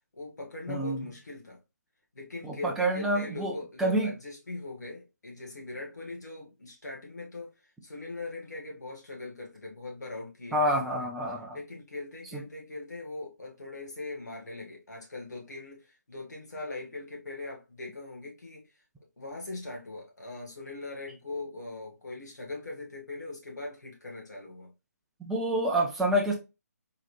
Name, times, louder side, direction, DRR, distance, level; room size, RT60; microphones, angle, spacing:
voice 1, 0.1-1.6 2.1-7.5 7.8-11.1 11.5-18.6 19.2-24.7, left 2 dB, 75° left, 1.7 m, -41 dB
voice 2, 0.7-1.0 2.4-4.1 10.5-11.6 12.3-12.4 25.2-26.3, right 1 dB, 5° right, 0.5 m, -28 dB
3.8 x 3.1 x 2.5 m
figure-of-eight pair, 150°, 9 cm